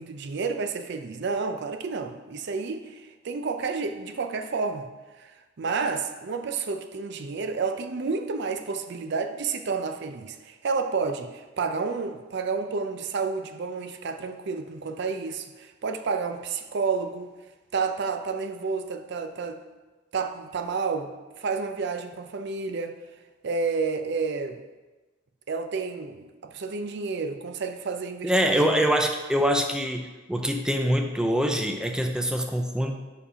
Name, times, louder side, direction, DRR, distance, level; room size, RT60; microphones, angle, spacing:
voice 1, 0.0-4.9 5.2-5.3 5.6-17.3 17.7-19.6 20.1-23.0 23.4-24.6 25.5-28.7, right 4 dB, 60° right, 7 dB, 0.5 m, -30 dB
voice 2, 28.2-32.9, equal, 5° right, 4 dB, 0.4 m, -24 dB
5.2 x 4.8 x 4.9 m, 1.2 s
head